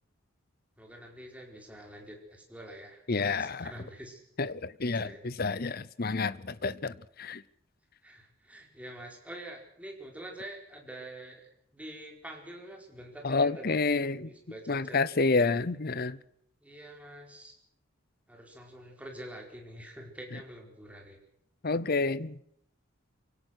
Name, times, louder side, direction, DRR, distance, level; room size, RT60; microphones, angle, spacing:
voice 1, 0.8-4.2 4.9-5.3 8.0-11.5 11.7-13.8 14.2-15.0 15.4-15.6 16.6-17.5 18.3-21.2, right 1 dB, 5° right, 4.5 m, -46 dB
voice 2, 3.1-3.7 4.4-7.4 13.2-14.3 14.7-16.2 21.6-22.3, left 3 dB, 45° left, 0.7 m, -29 dB
25.0 x 17.5 x 6.4 m
head